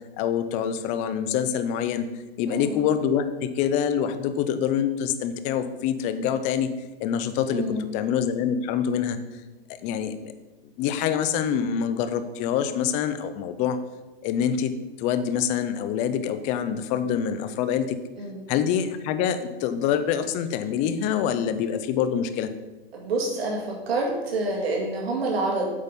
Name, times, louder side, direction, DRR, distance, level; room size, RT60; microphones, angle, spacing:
voice 1, 0.2-2.0 2.4-6.7 7.0-9.2 9.8-10.3 10.8-13.8 14.2-18.0 18.5-22.5, left 8 dB, 25° left, 10 dB, 0.4 m, -25 dB
voice 2, 2.5-2.8 7.5-7.8 18.2-18.5 22.9-25.7, right 2 dB, 75° right, -1 dB, 2.0 m, -27 dB
8.3 x 5.1 x 4.1 m, 1.2 s
hypercardioid pair, 135°, 31 cm